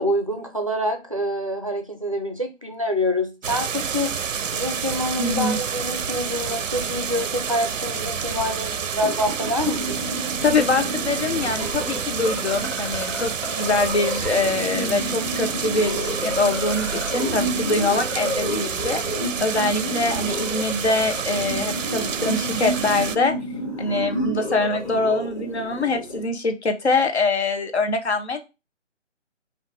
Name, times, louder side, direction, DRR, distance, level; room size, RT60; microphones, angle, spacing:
voice 1, 0.0-4.1 4.5-10.0, left 1 dB, 30° right, 0.5 m, -26 dB
sound 1, 3.4-23.2, right 7 dB, 90° right, 0.6 m, -29 dB
voice 2, 5.2-5.6 10.4-13.3 13.6-19.0 19.4-23.3 23.8-28.4, left 3 dB, 60° left, 0.9 m, -24 dB
sound 2, 9.0-26.2, equal, 25° left, 1.3 m, -31 dB
5.0 x 2.6 x 3.5 m
figure-of-eight pair, 160°, 37 cm